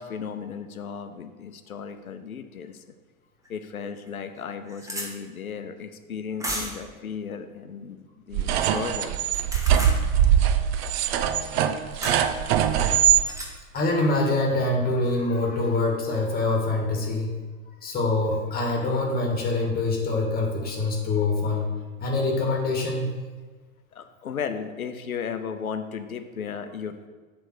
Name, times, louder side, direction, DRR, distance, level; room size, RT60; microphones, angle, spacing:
voice 1, 0.0-2.9 3.5-9.2 23.9-27.1, left 6 dB, 80° left, 8 dB, 0.8 m, -35 dB
sound 1, 3.5-3.6 4.1-4.2 4.4-5.1 6.4-6.9 9.2-10.0 12.0-12.2 13.2-13.5, right 1 dB, 10° right, 1.2 m, -33 dB
sound 2, 8.3-13.2, right 10 dB, 45° right, 0.6 m, -22 dB
voice 2, 13.7-17.3 17.8-21.7 22.0-23.1, left 2 dB, 20° left, 0 dB, 2.0 m, -25 dB
7.7 x 3.6 x 6.2 m, 1.4 s
figure-of-eight pair, 90°, 42 cm